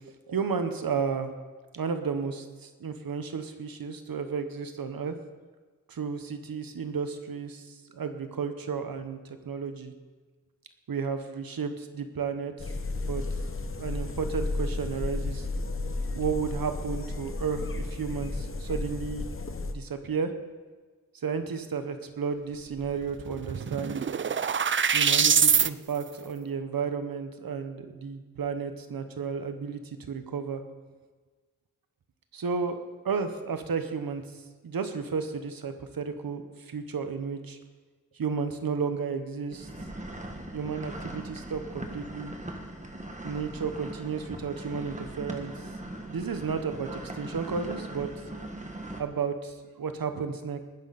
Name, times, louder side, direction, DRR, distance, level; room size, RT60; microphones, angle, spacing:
voice 1, 0.3-1.3 1.7-5.1 5.9-9.9 10.9-12.5 13.1-13.2 13.8-15.5 16.1-19.3 19.6-20.3 21.2-24.0 24.9-30.6 32.3-34.2 34.6-37.6 38.1-39.7 40.5-42.4 43.2-45.5 46.0-48.1 49.0-50.6, right 5 dB, 85° right, 8 dB, 1.1 m, -33 dB
sound 1, 12.6-19.7, left 2 dB, 40° left, 1.0 m, -33 dB
sound 2, 22.8-22.9 23.2-25.7, right 7 dB, 35° right, 0.4 m, -24 dB
sound 3, 39.5-49.0, right 1 dB, 20° right, 1.7 m, -40 dB
20.0 x 9.7 x 4.2 m, 1.4 s
wide cardioid pair, 75°, 34 cm